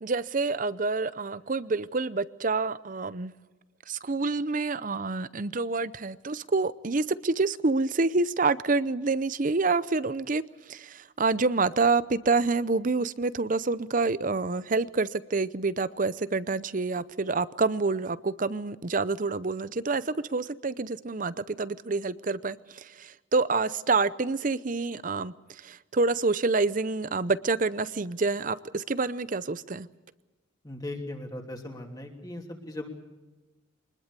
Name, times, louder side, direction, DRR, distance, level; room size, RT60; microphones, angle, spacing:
voice 1, 0.0-3.3 3.9-10.4 10.7-25.3 25.6-29.9, right 3 dB, 40° right, 0.6 m, -27 dB
voice 2, 30.6-32.9, left 1 dB, 20° left, 2.9 m, -38 dB
24.5 x 20.5 x 6.8 m
head